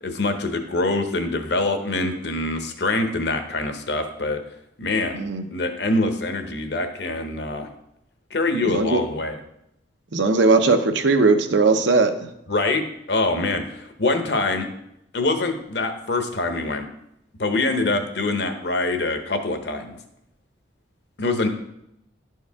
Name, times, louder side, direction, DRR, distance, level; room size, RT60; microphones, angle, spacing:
voice 1, 0.0-4.4 4.8-5.2 5.5-7.7 8.3-9.4 12.5-14.7 15.1-16.9 17.4-19.9 21.2-21.5, left 2 dB, 60° left, 6 dB, 0.9 m, -24 dB
voice 2, 5.1-5.5 8.7-9.0 10.1-12.1, right 3 dB, 70° right, 7 dB, 0.7 m, -18 dB
11.5 x 4.7 x 3.5 m, 0.81 s
head